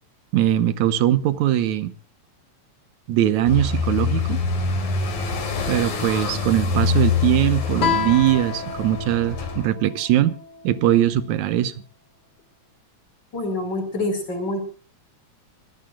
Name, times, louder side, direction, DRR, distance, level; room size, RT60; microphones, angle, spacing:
voice 1, 0.3-1.9 3.1-4.4 5.7-10.3 10.6-11.7, right 12 dB, 85° right, 2.4 m, -21 dB
sound 1, 3.4-9.7, left 4 dB, 90° left, 4.3 m, -25 dB
Guitar, 7.8-11.0, left 7 dB, 50° left, 3.1 m, -30 dB
voice 2, 13.3-14.7, left 2 dB, 35° left, 5.4 m, -26 dB
25.5 x 16.5 x 2.4 m
omnidirectional pair, 3.3 m